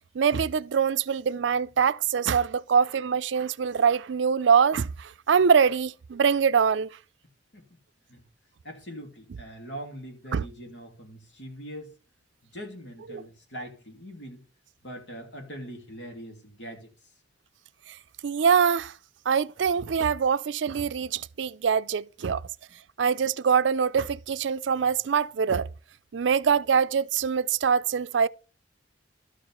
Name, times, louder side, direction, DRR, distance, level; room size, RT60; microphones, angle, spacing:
voice 1, 0.1-6.9 10.3-10.4 13.1-13.2 18.2-18.9 19.3-22.4 23.0-25.7 26.1-28.3, right 6 dB, 75° right, 0.4 m, -24 dB
voice 2, 8.6-11.9 12.4-14.4 14.8-16.9, equal, 75° left, 2.9 m, -42 dB
12.5 x 4.8 x 5.5 m
head